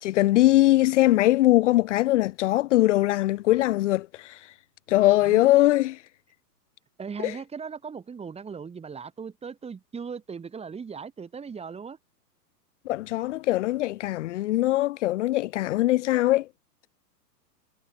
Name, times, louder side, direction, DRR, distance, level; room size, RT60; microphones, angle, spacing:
voice 1, 0.0-4.5 4.9-6.0 7.2-7.3 12.9-16.5, left 16 dB, 45° left, 1.1 m, -21 dB
voice 2, 7.0-12.0, right 6 dB, 10° right, 5.5 m, -38 dB
hypercardioid pair, 125°, 49 cm